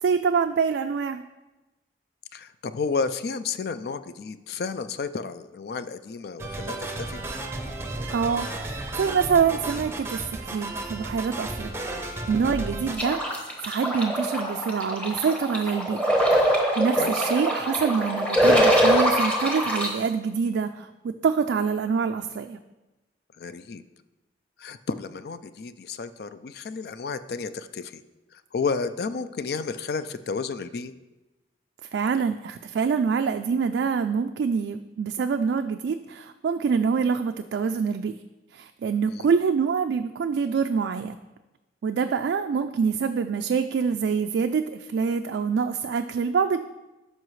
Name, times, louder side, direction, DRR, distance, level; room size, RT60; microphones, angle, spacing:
voice 1, 0.0-1.2 8.1-11.9 12.3-16.1 16.4-22.6 31.9-38.2 38.5-41.2 41.8-46.6, right 6 dB, 80° right, 7 dB, 0.3 m, -25 dB
voice 2, 2.3-7.2 17.0-17.1 23.4-23.8 24.6-28.0 28.3-30.9 39.1-39.3, left 4 dB, 60° left, 12 dB, 0.4 m, -32 dB
sound 1, 6.4-13.0, right 2 dB, 15° right, 0.6 m, -33 dB
sound 2, 12.9-19.9, equal, 5° left, 0.9 m, -23 dB
12.5 x 5.5 x 3.2 m, 1.1 s
head